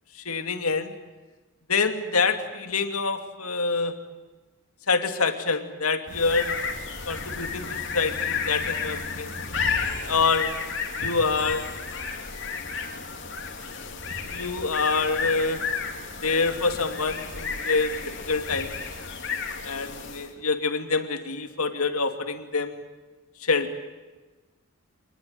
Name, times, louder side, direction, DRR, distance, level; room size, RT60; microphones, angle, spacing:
voice 1, 0.1-0.9 1.7-3.9 4.9-6.6 7.1-9.4 9.9-13.0 14.2-15.6 16.2-18.8 19.6-22.8 23.4-23.8, left 4 dB, 85° left, 7 dB, 2.6 m, -27 dB
sound 1, 6.1-20.4, left 5 dB, 55° left, 3.3 m, -32 dB
27.5 x 20.5 x 9.3 m, 1.2 s
head